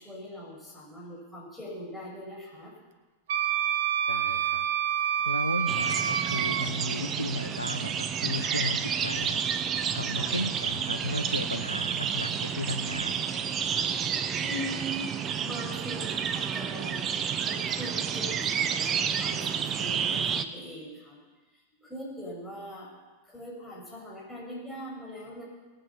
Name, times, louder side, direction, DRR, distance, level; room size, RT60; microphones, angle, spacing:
voice 1, 0.0-2.7 10.2-10.4 14.4-15.1 15.4-17.1 17.4-21.2 21.8-22.9 23.2-25.4, equal, 5° left, -5 dB, 6.5 m, -41 dB
Wind instrument woodwind instrument, 3.3-6.7, right 10 dB, 55° right, 1.1 m, -27 dB
voice 2, 4.1-4.7 5.2-9.4 9.9-13.3, left 1 dB, 85° left, 10 dB, 1.0 m, -34 dB
sound 1, 5.7-20.4, right 7 dB, 25° right, 0.9 m, -30 dB
19.5 x 9.1 x 7.2 m, 1.2 s
figure-of-eight pair, 90°, 0 cm